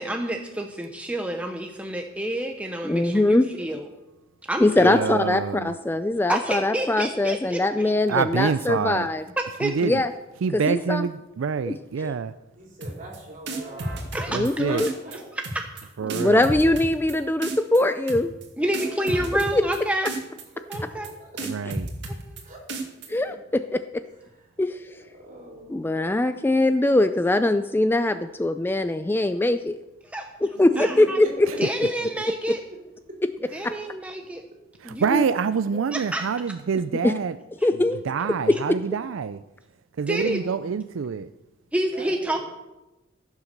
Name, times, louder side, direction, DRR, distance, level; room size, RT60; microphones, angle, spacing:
voice 1, 0.0-3.9 4.5-5.0 6.3-7.9 9.4-9.8 14.1-14.6 15.5-15.6 18.6-20.1 20.7-21.1 30.0-30.3 30.8-31.2 31.6-32.6 33.5-34.4 34.8-35.0 35.7-36.3 40.1-40.4 41.7-42.4, right 1 dB, 5° right, 4 dB, 0.7 m, -28 dB
voice 2, 2.8-3.5 4.6-9.2 9.8-10.1 10.5-11.1 11.7-11.8 12.0-12.2 14.3-14.9 16.1-18.3 19.5-19.6 23.1-24.0 24.6-25.0 25.7-29.8 30.4-31.5 31.8-31.9 32.5-32.6 33.6-33.7 35.1-35.2 37.0-37.1 37.6-38.0 38.5-38.6, left 2 dB, 10° left, 10 dB, 0.3 m, -22 dB
voice 3, 4.8-5.7 8.1-9.1 9.6-10.0 10.4-12.3 14.3-14.8 16.0-16.5 21.4-21.9 34.8-37.4 38.0-39.4 40.0-41.3, right 6 dB, 80° right, 13 dB, 0.4 m, -26 dB
voice 4, 7.0-8.5 10.0-10.1 12.5-14.4 14.6-15.2 18.6-18.7 19.0-19.4 20.4-20.9 21.2-21.3 21.6-21.7 22.4-22.6 23.3-23.4 24.1-24.5 25.1-26.0 30.5-31.9 32.7-32.8 35.6-35.7 40.2-41.2 41.8-42.4, right 2 dB, 40° right, -2 dB, 4.6 m, -42 dB
sound 1, 12.8-13.2 13.5-14.5 14.8-15.2 15.4-15.8 16.1-17.1 17.4-17.8 18.1-18.5 18.7-19.8 20.1-20.4 20.7-21.1 21.4-22.4 22.7-23.1, right 2 dB, 60° right, 2.1 m, -32 dB
15.5 x 7.3 x 6.6 m, 1.0 s
head